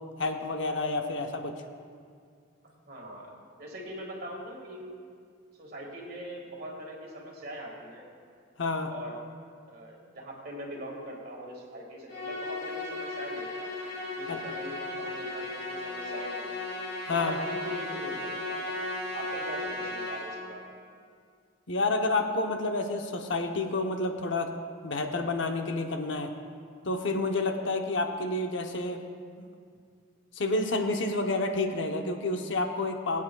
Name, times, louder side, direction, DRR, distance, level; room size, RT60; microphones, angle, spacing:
voice 1, 0.2-1.5 8.6-8.9 14.3-14.4 17.1-17.4 21.7-24.5 24.8-26.3 26.8-29.0 29.4-29.6 30.3-33.2, left 2 dB, 65° left, 4 dB, 0.8 m, -29 dB
voice 2, 2.9-3.3 3.6-4.9 5.5-8.1 8.8-9.2 9.7-13.8 14.1-16.5 17.1-18.9 19.1-20.8, equal, 50° right, -1 dB, 1.8 m, -42 dB
Musical instrument, 12.1-20.6, left 2 dB, 40° left, 2.6 m, -35 dB
22.0 x 8.3 x 2.3 m, 2.2 s
head